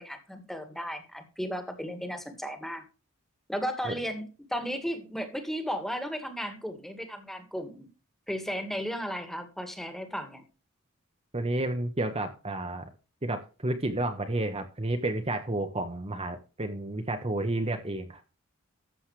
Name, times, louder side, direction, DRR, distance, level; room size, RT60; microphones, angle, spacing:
voice 1, 0.0-2.8 3.5-7.9 8.3-10.4, equal, ahead, 2.1 m, -35 dB
voice 2, 11.3-12.9 13.2-18.2, right 2 dB, 30° right, 1.2 m, -31 dB
13.5 x 8.0 x 3.3 m
head